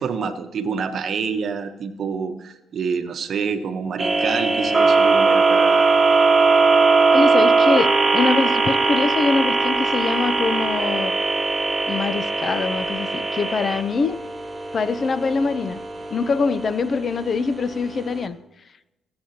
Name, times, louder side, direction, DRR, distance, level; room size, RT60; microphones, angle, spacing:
voice 1, 0.0-5.9, right 6 dB, 60° right, 8 dB, 0.9 m, -27 dB
sound 1, 4.0-18.2, right 3 dB, 10° right, 1.6 m, -20 dB
voice 2, 7.1-11.2 11.9-14.2 14.7-15.8 16.1-18.4, left 4 dB, 45° left, 15 dB, 0.4 m, -23 dB
16.0 x 8.5 x 2.8 m, 0.97 s
cardioid pair, 90°, 0 cm